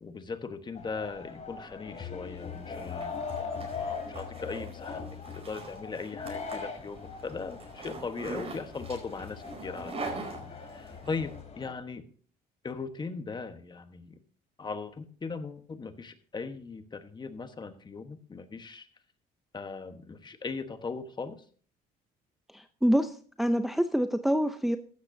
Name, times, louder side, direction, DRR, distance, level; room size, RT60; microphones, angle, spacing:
voice 1, 0.0-10.1 10.5-12.0 12.6-14.2 14.6-18.9 19.5-21.4, left 4 dB, 25° left, 9 dB, 1.2 m, -39 dB
sound 1, 0.7-11.7, left 5 dB, 40° left, 3.4 m, -40 dB
Zipper (clothing), 2.4-11.1, right 3 dB, 35° right, 4.7 m, -43 dB
voice 2, 22.5-23.1 23.4-24.8, equal, ahead, 8 dB, 0.6 m, -26 dB
15.0 x 12.0 x 2.7 m, 0.44 s
cardioid pair, 110°, 17 cm